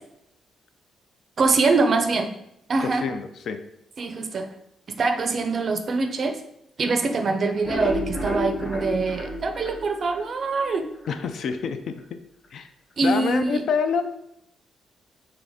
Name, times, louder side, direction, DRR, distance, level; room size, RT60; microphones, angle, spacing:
voice 1, 1.4-2.3 2.7-3.1 4.0-4.5 4.9-6.4 6.8-10.9 13.0-13.6, right 3 dB, 40° right, 6 dB, 0.4 m, -24 dB
voice 2, 2.8-3.6 11.1-12.2 12.5-12.7 13.0-14.0, left 6 dB, 60° left, 8 dB, 0.4 m, -27 dB
sound 1, 7.4-10.7 11.0-11.1 11.5-11.6 12.0-12.1, left 1 dB, 35° left, 1.0 m, -30 dB
3.8 x 3.2 x 3.5 m, 0.79 s
cardioid pair, 160°, 0 cm